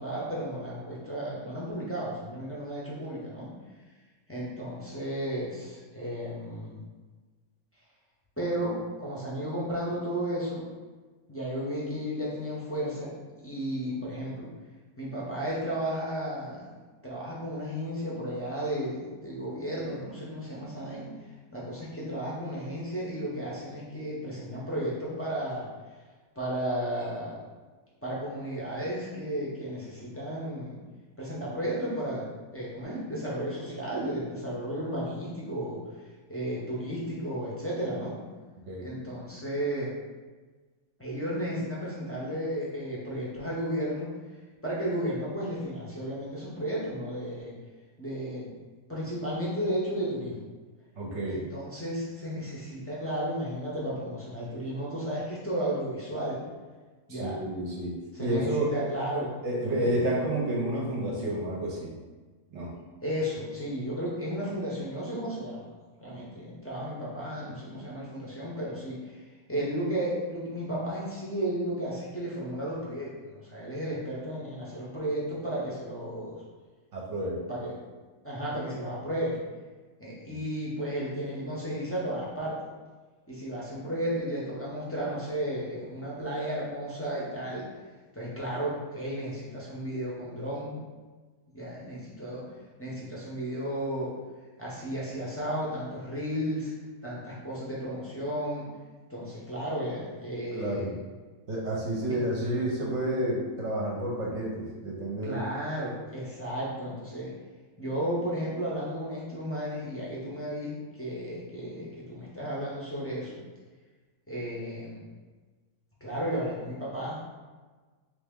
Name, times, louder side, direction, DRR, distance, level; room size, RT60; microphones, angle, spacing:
voice 1, 0.0-3.5 4.3-6.8 8.4-10.6 11.3-14.5 15.0-16.7 17.0-21.1 21.5-25.7 26.4-27.4 28.0-30.8 31.2-35.8 36.3-38.2 38.8-39.9 41.0-44.1 44.6-47.5 48.0-48.5 48.9-50.3 51.3-56.4 57.1-57.4 58.1-59.3 59.6-59.9 63.0-65.7 66.0-69.2 69.5-76.4 77.5-77.7 78.2-79.4 80.0-82.6 83.3-87.7 88.1-90.8 91.5-92.4 92.8-94.1 94.6-96.7 97.0-98.7 99.1-101.0 102.1-102.2 105.2-107.3 107.8-113.3 114.3-115.0 116.0-117.2, equal, 15° left, -7 dB, 0.5 m, -33 dB
voice 2, 51.0-51.4 57.1-58.8 59.4-61.9 62.5-62.7 76.9-77.4 80.3-80.4 100.5-100.9 101.5-105.4, right 1 dB, 60° right, -3 dB, 1.0 m, -30 dB
3.3 x 2.8 x 3.6 m, 1.3 s
omnidirectional pair, 1.5 m